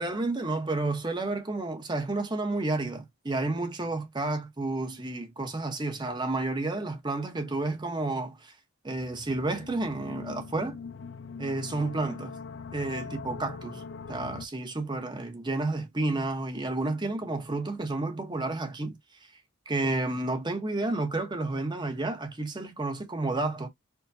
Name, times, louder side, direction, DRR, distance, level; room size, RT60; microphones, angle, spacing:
voice 1, 0.0-8.5 8.8-10.8 11.4-12.4 12.7-13.8 14.1-19.0 19.7-23.7, right 2 dB, 20° right, 0.8 m, -31 dB
sound 1, 9.0-14.5, left 5 dB, 60° left, 0.5 m, -42 dB
4.5 x 2.2 x 2.6 m
head